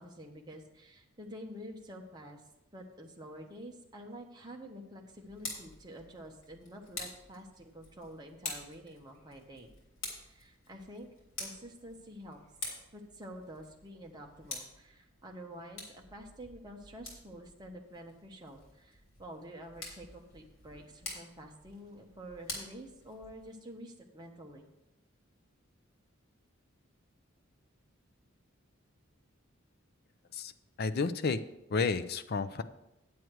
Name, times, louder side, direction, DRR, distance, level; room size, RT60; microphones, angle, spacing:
voice 1, 0.0-2.4 2.7-9.7 10.1-11.1 11.4-12.4 12.9-24.7, equal, 20° right, 1 dB, 1.1 m, -48 dB
Tick, 5.1-23.6, left 3 dB, 70° left, 3.4 m, -47 dB
voice 2, 30.8-31.4 31.7-32.6, left 4 dB, 50° left, 11 dB, 0.5 m, -31 dB
9.3 x 7.9 x 4.7 m, 0.89 s
head